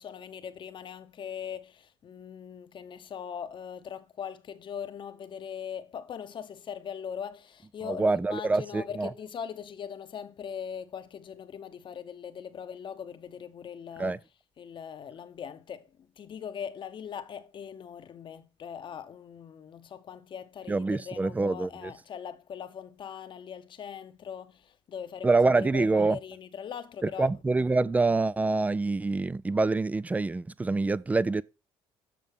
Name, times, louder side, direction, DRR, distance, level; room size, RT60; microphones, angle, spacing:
voice 1, 0.0-14.2 14.6-27.3, left 8 dB, 45° left, 0.9 m, -41 dB
voice 2, 7.9-9.1 14.0-14.2 20.7-21.9 25.2-26.2 27.2-31.4, right 3 dB, 15° right, 0.4 m, -26 dB
7.6 x 6.5 x 3.5 m
supercardioid pair, 85°, 11 cm